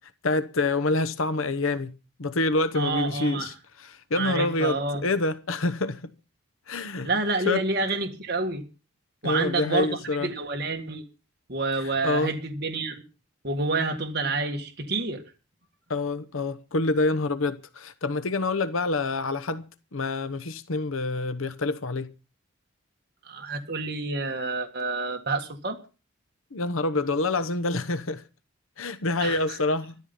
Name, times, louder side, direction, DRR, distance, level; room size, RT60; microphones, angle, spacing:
voice 1, 0.2-1.9 2.2-6.1 6.7-7.1 7.4-7.6 9.2-10.3 11.8-12.3 15.9-19.7 19.9-22.1 26.5-28.2 28.8-30.0, left 2 dB, 80° left, 0.9 m, -27 dB
voice 2, 2.7-3.5 4.1-5.0 7.0-8.6 9.2-11.0 11.5-13.0 13.4-15.2 23.3-25.8 29.2-29.6, right 3 dB, 50° right, 1.8 m, -28 dB
13.5 x 13.5 x 5.4 m
head